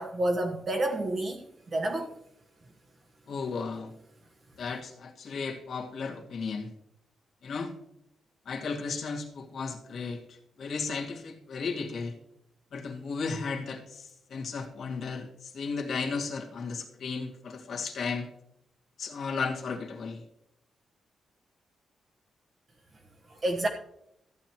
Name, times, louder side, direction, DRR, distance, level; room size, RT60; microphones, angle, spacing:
voice 1, 0.0-1.4 1.7-2.1 23.3-23.7, right 1 dB, 40° right, 1 dB, 1.2 m, -29 dB
voice 2, 3.3-3.9 4.6-6.7 7.4-7.7 8.5-10.2 10.6-12.1 12.7-14.0 14.3-15.3 15.5-18.3 19.0-20.2, left 4 dB, 65° left, 0 dB, 2.1 m, -34 dB
14.5 x 9.2 x 3.0 m, 0.79 s
cardioid pair, 110°, 0 cm